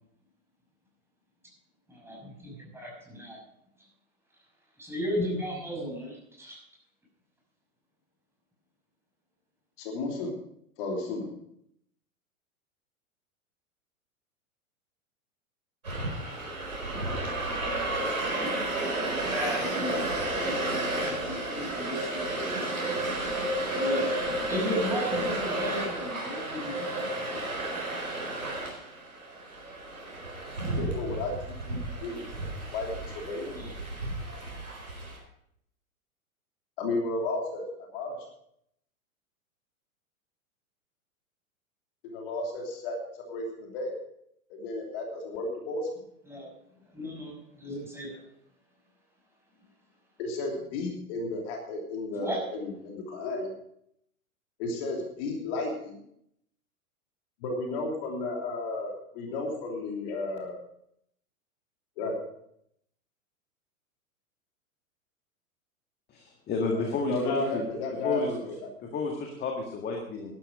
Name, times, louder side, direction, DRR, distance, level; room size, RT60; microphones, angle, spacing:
voice 1, 1.9-3.4 4.8-6.6 19.2-20.1 20.5-22.4 23.7-24.1 24.5-27.4 33.5-33.7 46.3-46.5 46.9-48.2 52.1-52.4, equal, 5° right, -2 dB, 6.0 m, -35 dB
voice 2, 9.8-10.3 10.8-11.3 30.7-31.3 31.6-32.3 32.7-33.6 36.8-37.6 37.9-38.2 42.0-43.0 43.3-44.0 44.5-45.9 50.2-53.5 54.6-56.0 57.4-60.6 62.0-62.1 66.7-68.7, left 2 dB, 45° left, 1 dB, 3.0 m, -33 dB
sound 1, 15.8-35.2, right 1 dB, 80° right, 4.5 m, -32 dB
voice 3, 66.1-67.7 68.0-68.3 68.9-70.3, left 3 dB, 25° left, 2 dB, 1.9 m, -31 dB
12.5 x 11.5 x 5.1 m, 0.73 s
figure-of-eight pair, 100°, 42 cm